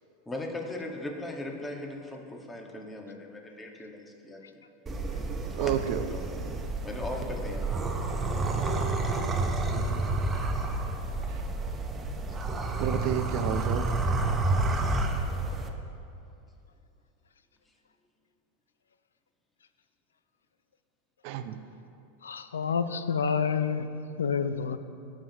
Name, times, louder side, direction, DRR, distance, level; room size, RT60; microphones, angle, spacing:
voice 1, 0.2-4.6 5.6-5.8 6.1-6.2 6.8-7.9 8.4-8.8, left 1 dB, 15° left, 1 dB, 1.6 m, -38 dB
sound 1, 4.9-15.7, right 2 dB, 20° right, 1.0 m, -30 dB
voice 2, 5.6-6.0 9.7-10.1 11.3-11.4 12.8-13.9 21.2-21.6, right 11 dB, 55° right, 9 dB, 0.7 m, -31 dB
voice 3, 22.2-23.9 24.2-24.8, left 6 dB, 85° left, 12 dB, 0.5 m, -28 dB
18.0 x 7.5 x 3.0 m, 2.6 s
hypercardioid pair, 95°, 0 cm